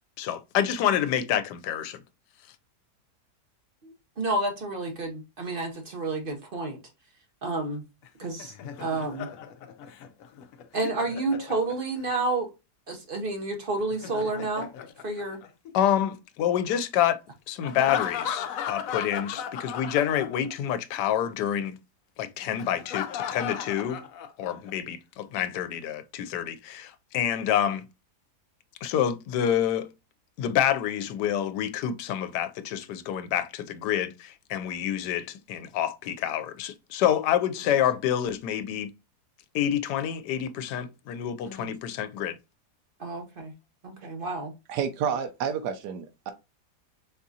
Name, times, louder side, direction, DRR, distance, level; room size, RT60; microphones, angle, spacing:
voice 1, 0.2-2.0 15.7-17.2 17.5-21.8 22.2-24.0 24.4-27.8 28.8-29.9 30.4-38.9 39.5-42.4, left 10 dB, 85° left, 1.2 m, -27 dB
voice 2, 3.8-6.8 7.4-7.8 8.2-9.3 10.7-12.5 12.9-14.7 15.0-15.4 41.4-41.7 43.0-43.5 43.8-44.5, right 2 dB, 45° right, 0.8 m, -30 dB
Laughter, 8.0-12.1 13.8-15.9 17.6-20.7 21.0-21.1 22.6-24.7, left 8 dB, 70° left, 0.9 m, -36 dB
voice 3, 44.7-46.3, right 7 dB, 85° right, 1.2 m, -30 dB
4.1 x 3.6 x 2.7 m
omnidirectional pair, 1.8 m